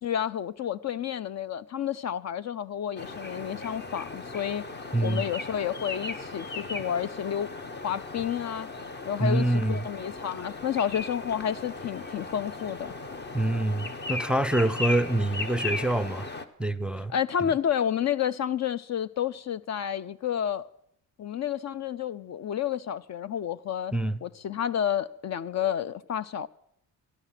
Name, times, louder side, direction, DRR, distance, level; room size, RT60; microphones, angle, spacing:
voice 1, 0.0-4.6 5.0-7.5 7.8-8.7 9.1-12.9 17.1-20.6 21.2-23.9 24.2-26.5, left 9 dB, 50° left, 0.5 m, -30 dB
sound 1, 3.0-16.5, left 3 dB, 30° left, 1.1 m, -37 dB
voice 2, 4.9-5.2 9.2-9.9 13.3-16.3 16.6-17.1 17.4-17.5 23.9-24.2, right 1 dB, 5° right, 0.5 m, -26 dB
14.0 x 12.0 x 5.8 m
cardioid pair, 85°, 36 cm